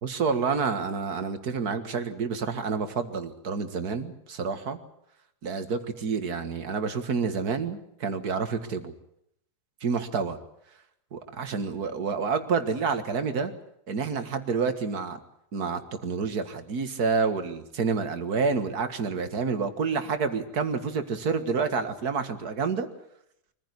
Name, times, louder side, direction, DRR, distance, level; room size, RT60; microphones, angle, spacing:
voice 1, 0.0-4.8 5.4-8.9 9.8-10.4 11.1-13.5 13.9-15.2 15.5-22.9, right 5 dB, 75° right, 9 dB, 2.3 m, -28 dB
24.0 x 15.0 x 9.8 m, 0.76 s
omnidirectional pair, 1.6 m